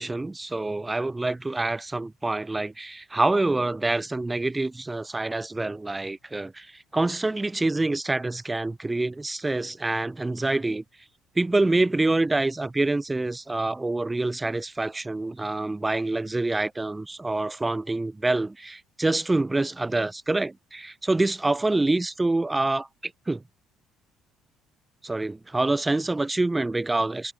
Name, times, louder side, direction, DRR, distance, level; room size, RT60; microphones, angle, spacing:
voice 1, 0.0-10.8 11.4-23.4 25.0-27.3, right 2 dB, 15° right, 0.4 m, -26 dB
hypercardioid pair, 55°, 0 cm